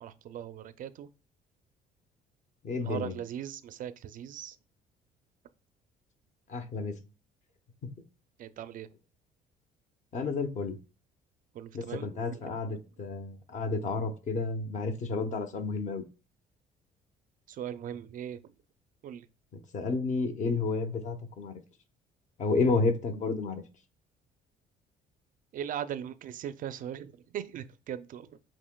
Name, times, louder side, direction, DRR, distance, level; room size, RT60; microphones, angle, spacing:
voice 1, 0.0-1.1 2.8-4.6 8.4-8.9 11.5-12.8 17.5-18.4 19.0-19.3 25.5-28.4, right 9 dB, 55° right, 0.4 m, -39 dB
voice 2, 2.6-3.2 6.5-7.0 7.8-7.9 10.1-10.8 11.7-16.0 19.7-21.5 22.4-23.6, left 3 dB, 45° left, 0.8 m, -31 dB
7.1 x 2.9 x 2.2 m
cardioid pair, 110°, 17 cm